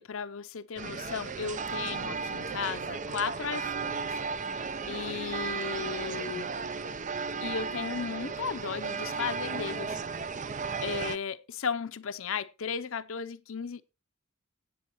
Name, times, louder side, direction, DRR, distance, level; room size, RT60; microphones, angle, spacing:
voice 1, 0.0-4.1 4.4-6.6 7.4-10.3 10.8-13.8, left 6 dB, 65° left, 0.6 m, -35 dB
sound 1, 0.8-11.2, right 5 dB, 35° right, 0.6 m, -35 dB
17.0 x 8.0 x 3.0 m
head